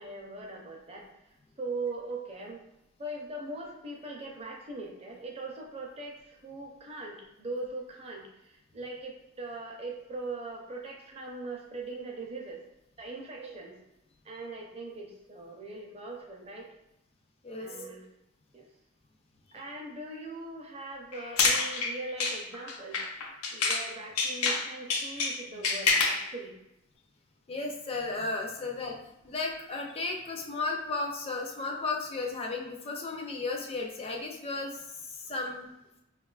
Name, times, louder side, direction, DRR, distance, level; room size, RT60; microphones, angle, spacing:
voice 1, 0.0-2.6 3.0-12.6 13.0-13.7 14.2-16.7 17.6-18.1 18.5-18.7 19.5-23.0 23.5-26.5, right 2 dB, 25° right, -1 dB, 0.5 m, -40 dB
sound 1, 21.1-23.9 24.2-26.3, left 4 dB, 80° left, 0.5 m, -28 dB
voice 2, 27.5-29.0 29.2-35.7, left 3 dB, 25° left, 1 dB, 0.4 m, -34 dB
4.7 x 2.3 x 2.3 m, 0.89 s
head